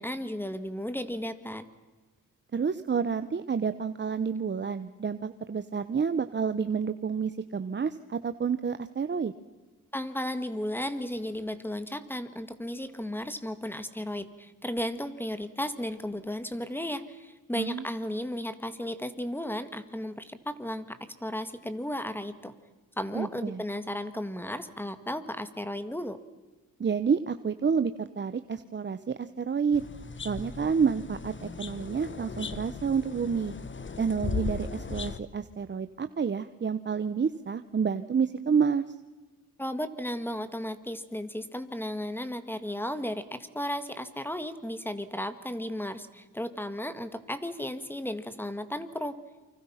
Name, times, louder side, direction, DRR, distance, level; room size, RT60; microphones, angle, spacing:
voice 1, 0.0-1.6 9.9-22.5 23.0-26.2 39.6-49.2, left 1 dB, 5° left, 11 dB, 1.9 m, -34 dB
voice 2, 2.5-9.3 17.5-17.9 23.1-23.6 26.8-29.8 30.2-33.5 34.0-38.8, right 6 dB, 35° right, 11 dB, 0.9 m, -29 dB
sound 1, 29.7-35.2, left 5 dB, 35° left, 1.4 m, -37 dB
29.5 x 25.0 x 5.8 m, 1.3 s
cardioid pair, 100°, 32 cm